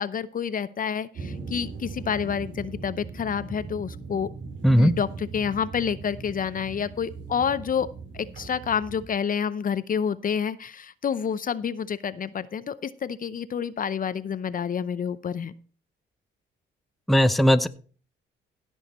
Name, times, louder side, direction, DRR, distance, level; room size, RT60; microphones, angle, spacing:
voice 1, 0.0-4.3 4.7-15.5, left 7 dB, 45° left, 15 dB, 0.7 m, -28 dB
sound 1, 1.1-9.1, right 4 dB, 70° right, 3.4 m, -39 dB
voice 2, 4.6-4.9 17.1-17.7, equal, ahead, 11 dB, 0.7 m, -18 dB
16.0 x 6.4 x 4.3 m, 0.41 s
cardioid pair, 90°, 20 cm